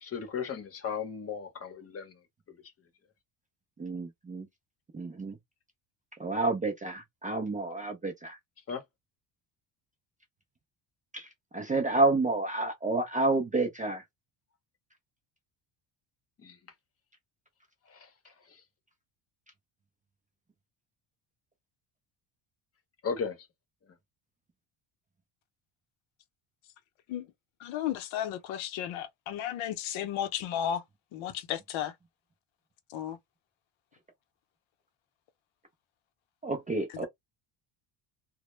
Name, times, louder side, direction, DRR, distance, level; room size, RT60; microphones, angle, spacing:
voice 1, 0.0-2.2 2.5-2.6 8.7-8.8 16.4-16.6 17.9-18.1 18.4-18.6 23.0-23.5, left 6 dB, 30° left, 0.7 m, -36 dB
voice 2, 3.8-4.5 4.9-5.4 6.2-8.4 11.1-11.3 11.5-14.0 36.4-37.1, right 2 dB, 20° right, 0.4 m, -29 dB
voice 3, 27.6-30.8 31.1-31.9 32.9-33.2 36.9-37.1, left 10 dB, 75° left, 0.7 m, -34 dB
2.1 x 2.0 x 3.0 m
cardioid pair, 115°, 48 cm